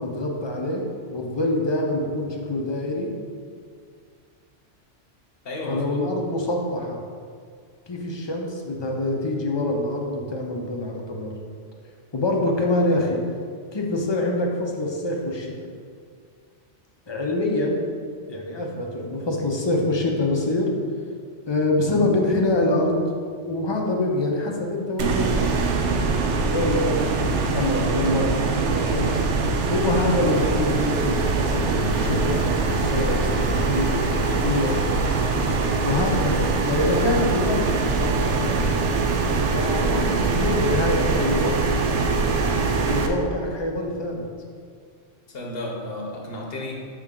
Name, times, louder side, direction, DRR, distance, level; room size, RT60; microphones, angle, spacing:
voice 1, 0.0-3.1 5.7-7.0 7.9-11.4 12.1-13.2 13.7-15.5 17.1-17.9 18.3-20.7 21.5-23.0 23.5-29.2 29.7-34.8 35.8-38.6 39.5-41.9 42.8-44.3, left 2 dB, 30° left, 0 dB, 0.5 m, -25 dB
voice 2, 5.4-5.9 45.3-46.9, left 1 dB, 55° left, 0 dB, 1.0 m, -32 dB
sound 1, 25.0-43.1, right 4 dB, 75° right, 0.9 m, -23 dB
6.1 x 4.5 x 3.7 m, 2.1 s
omnidirectional pair, 1.2 m